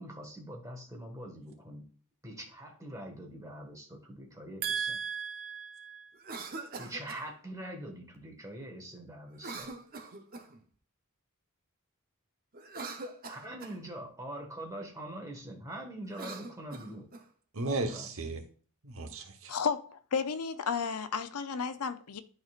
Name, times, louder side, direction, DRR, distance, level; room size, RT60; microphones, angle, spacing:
voice 1, 0.0-1.9 2.2-5.0 6.8-9.7 13.3-17.1 17.8-18.1, right 1 dB, 15° right, 1.6 m, -43 dB
voice 2, 4.6-6.2 17.5-18.4 18.8-19.6, right 4 dB, 65° right, 1.1 m, -35 dB
Cough, 6.1-7.3 9.4-10.6 12.5-13.8 16.0-17.3, right 3 dB, 40° right, 0.9 m, -43 dB
voice 3, 19.5-22.2, left 6 dB, 85° left, 0.6 m, -33 dB
11.5 x 4.3 x 2.5 m
head